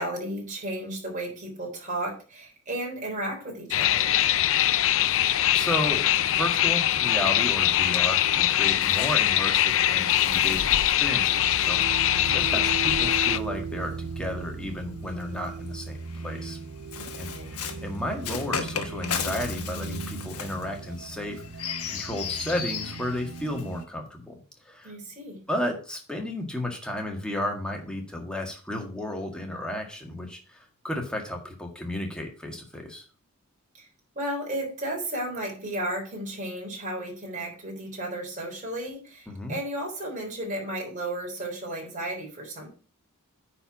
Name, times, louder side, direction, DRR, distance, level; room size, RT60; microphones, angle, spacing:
voice 1, 0.0-4.1 17.0-17.6 24.8-25.4 33.7-33.9 34.2-42.7, right 1 dB, 35° right, -1 dB, 3.9 m, -34 dB
sound 1, 3.7-13.4, left 12 dB, 60° left, 0.5 m, -23 dB
voice 2, 5.5-16.6 17.1-24.4 24.7-24.9 25.5-30.6 30.8-33.0 39.3-39.6, left 1 dB, 5° left, 2 dB, 1.8 m, -33 dB
Bird, 7.6-14.1 15.0-23.8, left 7 dB, 85° left, 1.3 m, -38 dB
sound 2, 10.8-23.9, right 5 dB, 75° right, 0.6 m, -37 dB
9.6 x 4.5 x 5.9 m, 0.36 s
head